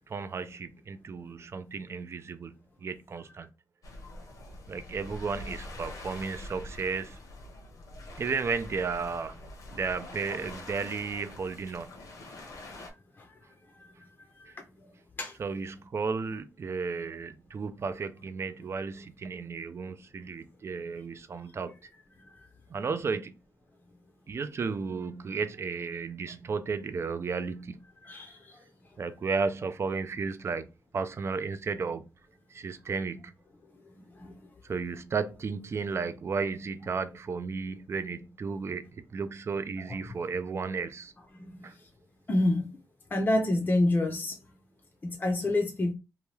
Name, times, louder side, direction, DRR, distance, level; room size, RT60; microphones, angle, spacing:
voice 1, 0.1-2.6 2.8-3.5 4.7-7.2 8.2-9.4 9.7-11.9 15.4-21.7 22.7-23.3 24.3-27.8 29.0-30.7 30.9-32.1 32.5-33.3 34.6-41.1 41.6-41.7, right 5 dB, 45° right, 0.4 m, -33 dB
sound 1, 3.8-12.9, left 2 dB, 70° left, 0.9 m, -45 dB
voice 2, 28.0-28.6 34.2-34.3 39.9-40.0 41.3-41.6 42.3-42.7 43.1-44.4 45.0-45.9, left 2 dB, 35° left, 0.6 m, -27 dB
2.8 x 2.2 x 3.1 m
cardioid pair, 95°, 6 cm